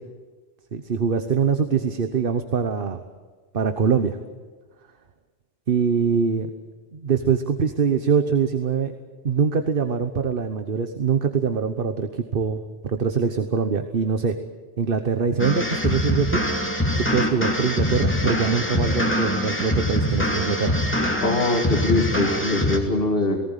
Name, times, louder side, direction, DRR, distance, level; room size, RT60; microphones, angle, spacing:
voice 1, 0.7-3.0 3.5-4.2 5.7-6.5 6.9-8.9 9.2-14.4 14.8-16.4 17.1-20.7, right 6 dB, 55° right, 8 dB, 1.2 m, -23 dB
sound 1, 15.4-22.8, left 1 dB, 10° left, 2.4 m, -24 dB
voice 2, 21.2-23.4, left 2 dB, 55° left, 0 dB, 2.4 m, -22 dB
18.5 x 18.5 x 10.0 m, 1.4 s
omnidirectional pair, 1.2 m